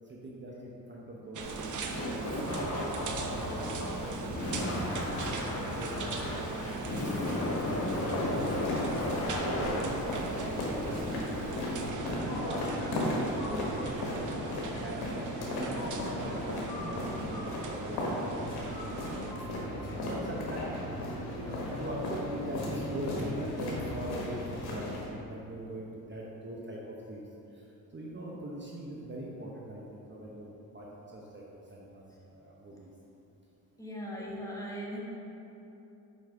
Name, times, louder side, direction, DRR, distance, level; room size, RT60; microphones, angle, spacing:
voice 1, 0.0-1.7 2.3-7.5 8.0-8.9 9.3-15.0 15.5-19.1 19.4-19.5 19.8-20.6 20.9-21.0 21.4-27.2 27.5-27.6 27.9-31.4 31.7-32.9, right 1 dB, 30° right, -4 dB, 0.9 m, -41 dB
sound 1, 1.3-19.3, right 4 dB, 55° right, 0.7 m, -40 dB
Laughter, 1.4-11.9, left 1 dB, 40° left, 1.1 m, -35 dB
sound 2, 8.0-25.0, left 1 dB, 90° left, 1.3 m, -36 dB
voice 2, 20.0-20.3 33.8-35.0, equal, 10° left, -5 dB, 1.3 m, -39 dB
5.6 x 5.4 x 3.7 m, 2.9 s
cardioid pair, 70°, 37 cm